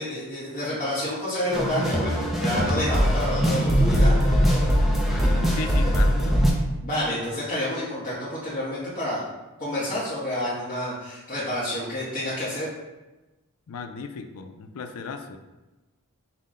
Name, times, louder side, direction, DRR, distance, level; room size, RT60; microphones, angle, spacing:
voice 1, 0.0-4.4 6.8-9.2 9.6-12.7, left 1 dB, 40° left, -10 dB, 1.1 m, -29 dB
sound 1, 1.5-6.5, equal, ahead, 0.5 m, -21 dB
voice 2, 5.6-6.4 13.7-15.4, left 4 dB, 75° left, 7 dB, 0.4 m, -36 dB
5.6 x 2.1 x 3.6 m, 1.1 s
head